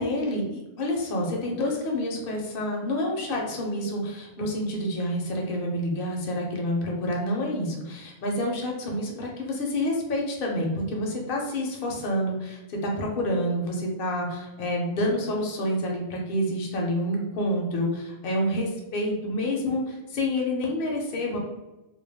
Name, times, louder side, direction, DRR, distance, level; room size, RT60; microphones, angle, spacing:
voice 1, 0.0-21.4, left 1 dB, 65° left, -1 dB, 0.8 m, -28 dB
2.2 x 2.2 x 3.3 m, 1.0 s
omnidirectional pair, 1.0 m